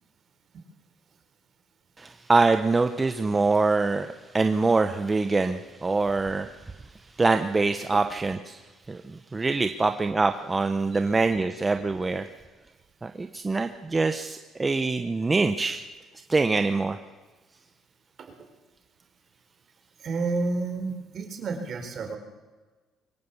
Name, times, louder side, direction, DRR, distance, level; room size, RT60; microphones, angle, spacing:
voice 1, 2.0-6.5 7.2-8.6 8.9-12.2 13.0-15.8 16.3-17.0, right 3 dB, 20° right, 7 dB, 0.9 m, -24 dB
voice 2, 20.0-22.2, right 3 dB, 50° right, 5 dB, 4.2 m, -31 dB
23.0 x 17.5 x 7.2 m, 1.3 s
cardioid pair, 115°, 0 cm